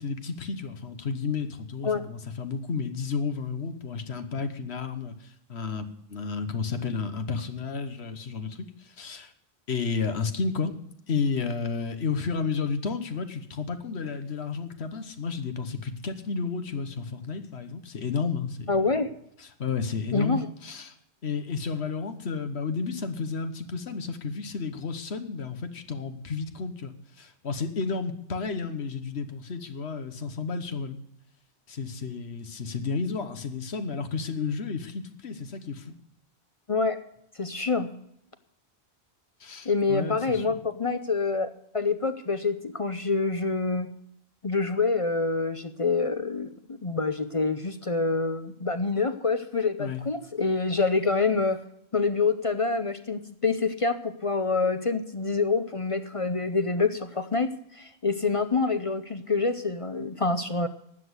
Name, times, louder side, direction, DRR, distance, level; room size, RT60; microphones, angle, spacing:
voice 1, 0.0-9.3 9.7-10.7 11.1-18.9 19.4-21.0 21.2-31.0 31.7-35.9 39.4-40.6 49.8-50.0, left 5 dB, 75° left, 9 dB, 1.4 m, -32 dB
voice 2, 18.7-19.1 20.1-20.5 36.7-37.0 37.4-37.9 39.6-43.9 44.4-46.5 46.8-51.6 51.9-60.7, left 4 dB, 35° left, 10 dB, 0.7 m, -26 dB
12.5 x 8.2 x 8.0 m, 0.73 s
omnidirectional pair, 1.1 m